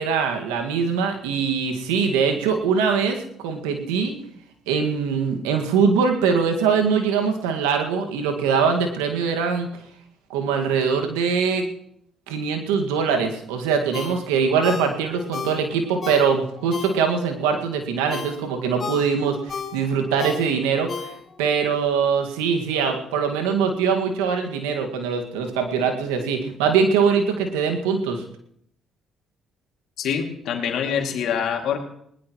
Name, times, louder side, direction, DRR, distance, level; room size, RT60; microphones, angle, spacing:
voice 1, 0.0-4.1 4.7-9.7 10.3-11.6 12.3-28.2, right 6 dB, 90° right, 4 dB, 1.9 m, -22 dB
Ringtone, 13.9-17.4 17.8-21.6 21.9-22.0, left 6 dB, 45° left, 3.2 m, -35 dB
voice 2, 30.0-31.8, left 8 dB, 70° left, 3 dB, 2.5 m, -25 dB
21.0 x 19.0 x 3.1 m, 0.71 s
supercardioid pair, 55°, 0 cm